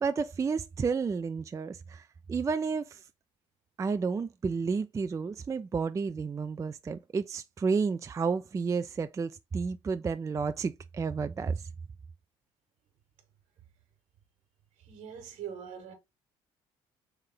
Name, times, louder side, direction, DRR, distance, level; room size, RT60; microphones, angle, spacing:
voice 1, 0.0-3.0 3.8-11.7, right 5 dB, 25° right, 0.3 m, -31 dB
voice 2, 14.8-15.9, right 8 dB, 70° right, 1.4 m, -42 dB
3.4 x 3.2 x 3.6 m
hypercardioid pair, 60°, 13 cm